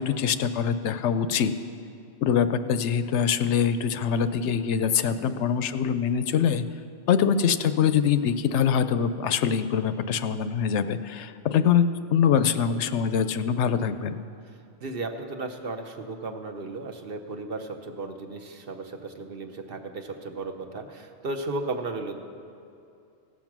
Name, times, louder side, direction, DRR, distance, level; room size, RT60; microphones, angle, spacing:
voice 1, 0.0-1.5 2.2-6.6 7.1-14.2, left 7 dB, 75° left, 11 dB, 0.9 m, -24 dB
voice 2, 5.1-5.6 14.8-22.2, right 3 dB, 55° right, 5 dB, 1.0 m, -35 dB
16.5 x 7.3 x 6.0 m, 2.6 s
omnidirectional pair, 1.2 m